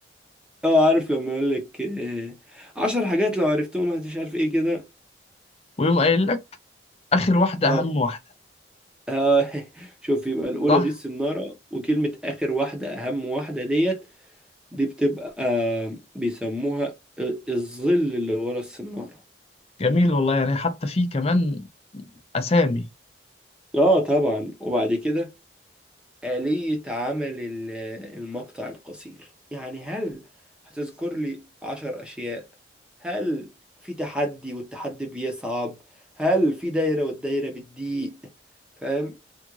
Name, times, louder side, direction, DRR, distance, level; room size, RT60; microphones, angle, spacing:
voice 1, 0.6-4.9 7.6-7.8 9.1-14.0 14.7-19.1 23.7-25.3 26.2-29.1 29.5-30.2 30.7-32.4 33.0-33.5 33.8-35.7 36.2-38.2 38.8-39.1, equal, 5° right, 0.8 m, -25 dB
voice 2, 5.8-6.4 7.1-8.2 10.7-10.9 19.8-21.7 21.9-22.0 22.3-22.8, left 2 dB, 30° left, 0.5 m, -21 dB
3.6 x 2.4 x 3.0 m
head